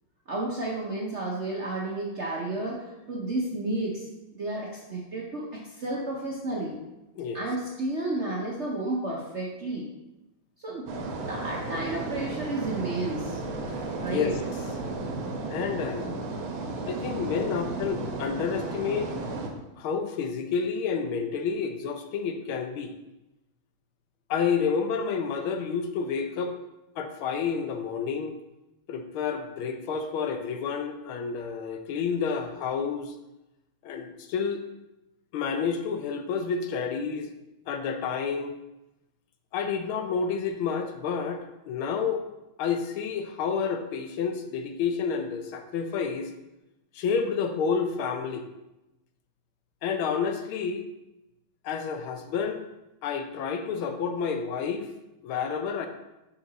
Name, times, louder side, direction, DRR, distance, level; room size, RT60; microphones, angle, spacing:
voice 1, 0.3-4.1 4.3-6.8 7.3-9.9 10.6-10.9 11.3-13.4 13.9-14.3, right 2 dB, 50° right, -3 dB, 0.8 m, -32 dB
sound 1, 10.9-19.5, right 3 dB, 80° right, 1.7 m, -34 dB
voice 2, 15.5-16.2 16.9-19.1 19.8-22.9 24.3-26.6 27.0-28.3 28.9-33.1 33.8-34.6 35.3-37.3 37.7-38.5 39.5-42.2 42.6-46.3 46.9-48.4 49.8-50.8 51.6-52.6 53.0-54.9 55.2-55.9, left 6 dB, 80° left, 7 dB, 1.5 m, -29 dB
5.8 x 5.8 x 4.0 m, 0.96 s
omnidirectional pair, 2.3 m